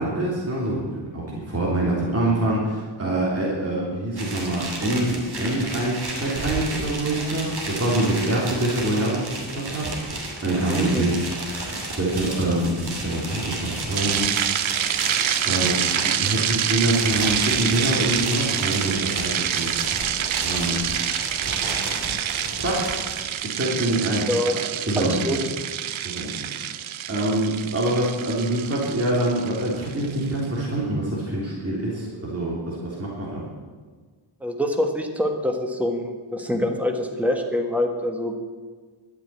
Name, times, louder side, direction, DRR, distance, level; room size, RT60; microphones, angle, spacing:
voice 1, 0.0-11.2 12.0-14.3 15.4-20.0 20.4-20.8 21.6-21.9 22.6-22.9 23.4-24.3 24.9-25.4 26.0-26.4 26.6-26.8 27.1-33.4, right 1 dB, 30° right, -5 dB, 3.2 m, -25 dB
sound 1, 4.1-23.3, right 2 dB, 50° right, 2.8 m, -32 dB
voice 2, 10.7-11.1 24.3-24.6 25.0-25.4 34.4-38.5, left 1 dB, 5° right, 4 dB, 1.4 m, -25 dB
sound 2, 14.0-30.2, right 10 dB, 80° right, 0.7 m, -27 dB
12.0 x 9.0 x 8.8 m, 1.5 s
wide cardioid pair, 155°, 47 cm